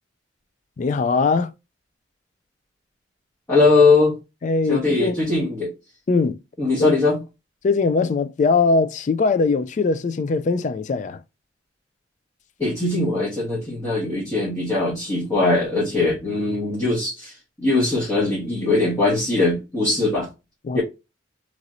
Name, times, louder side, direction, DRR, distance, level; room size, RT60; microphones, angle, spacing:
voice 1, 0.8-1.5 4.4-5.2 6.1-6.4 6.8-6.9 7.6-11.2 20.6-20.8, left 4 dB, 40° left, 0.3 m, -21 dB
voice 2, 3.5-4.1 4.7-5.7 6.6-7.2 12.6-17.3 17.6-20.3 20.7-20.8, left 3 dB, 15° left, 1.2 m, -20 dB
3.0 x 3.0 x 2.5 m
head